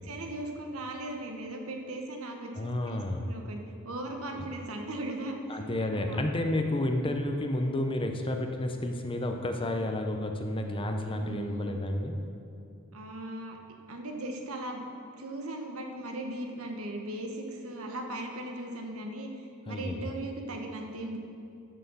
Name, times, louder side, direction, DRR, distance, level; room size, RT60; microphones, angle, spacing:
voice 1, 0.0-5.6 5.9-6.2 11.0-11.8 12.9-13.6 13.9-14.8 15.2-21.2, right 1 dB, 85° right, 3 dB, 1.3 m, -38 dB
voice 2, 2.5-3.3 4.3-4.5 5.5-12.1 19.7-20.1, left 1 dB, 25° left, 4 dB, 0.8 m, -31 dB
11.5 x 6.3 x 6.8 m, 2.7 s
head